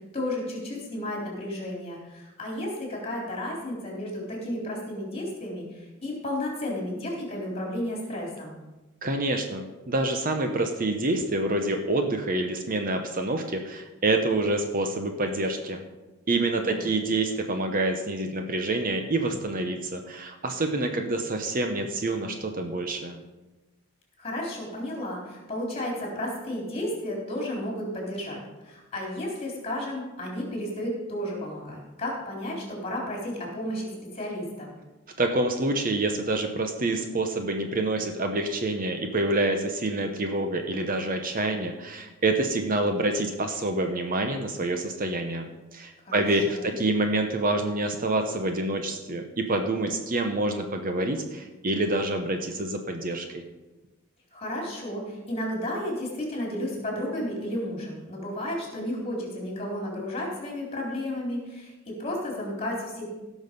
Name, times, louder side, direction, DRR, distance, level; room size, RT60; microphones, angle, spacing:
voice 1, 0.1-8.6 16.6-16.9 24.2-28.4 28.6-34.7 46.0-46.7 54.3-63.1, left 1 dB, 25° left, -2 dB, 3.8 m, -33 dB
voice 2, 9.0-15.8 16.3-23.2 35.2-45.5 45.7-53.4, right 2 dB, 40° right, 5 dB, 0.9 m, -27 dB
17.0 x 6.3 x 5.3 m, 1.1 s
head